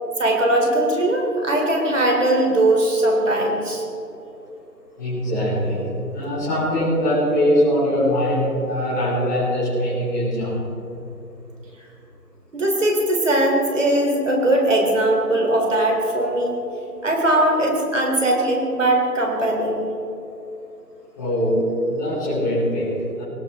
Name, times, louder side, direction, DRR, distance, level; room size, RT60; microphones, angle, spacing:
voice 1, 0.2-3.8 12.5-16.6 17.0-19.9, right 1 dB, 50° right, 0 dB, 3.3 m, -20 dB
voice 2, 5.0-10.6 21.2-23.2, equal, 10° left, -12 dB, 3.0 m, -22 dB
19.0 x 18.0 x 3.6 m, 2.9 s
figure-of-eight pair, 170°, 49 cm